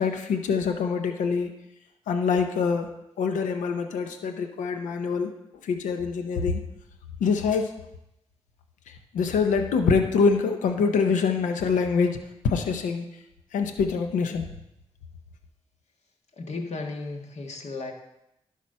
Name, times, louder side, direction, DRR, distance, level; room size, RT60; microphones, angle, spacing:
voice 1, 0.0-1.5 2.1-2.9 3.2-5.3 5.6-6.6 7.2-7.7 9.1-12.2 12.4-13.1 13.5-14.4, left 5 dB, 90° left, 7 dB, 0.7 m, -24 dB
voice 2, 16.4-17.9, left 3 dB, 60° left, 3 dB, 1.5 m, -34 dB
11.0 x 5.0 x 5.5 m, 0.85 s
supercardioid pair, 40°, 13 cm